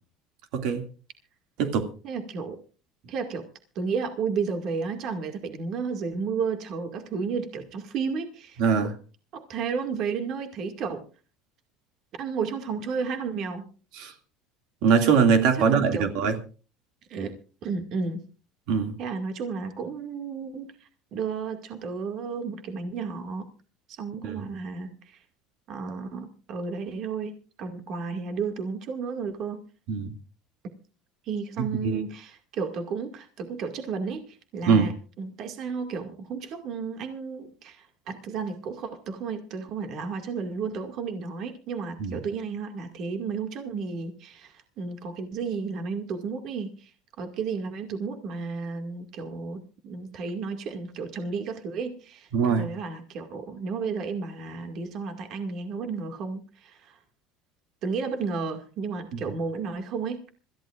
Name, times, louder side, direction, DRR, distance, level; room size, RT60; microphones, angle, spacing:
voice 1, 0.5-0.8 1.6-1.9 8.6-8.9 13.9-14.1 14.8-16.4 18.7-18.9 24.2-24.4 29.9-30.1 31.6-32.0 34.7-34.9 42.0-42.2 52.3-52.7, right 6 dB, 70° right, 2.3 m, -22 dB
voice 2, 2.0-2.6 3.0-3.4 3.8-8.9 9.3-11.0 12.1-13.7 15.5-16.1 17.1-17.4 17.6-18.2 19.0-23.5 23.9-25.2 25.7-27.3 27.6-29.6 31.3-34.9 35.2-46.9 47.2-57.0 57.8-60.2, right 5 dB, 50° right, 2.1 m, -32 dB
26.0 x 14.5 x 2.5 m
cardioid pair, 140°, 0 cm